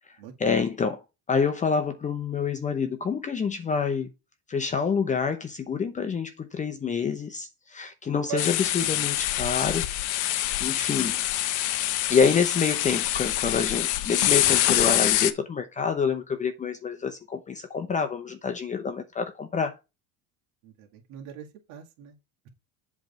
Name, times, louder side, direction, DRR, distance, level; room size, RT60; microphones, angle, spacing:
voice 1, 0.4-1.0 1.3-4.1 4.5-9.8 10.3-11.2 12.1-19.7, left 6 dB, 20° left, 0.8 m, -27 dB
voice 2, 8.3-9.1 20.6-22.1, right 11 dB, 75° right, 2.0 m, -40 dB
sound 1, 8.4-15.3, left 14 dB, 60° left, 0.8 m, -25 dB
7.9 x 3.5 x 5.4 m
cardioid pair, 140°, 34 cm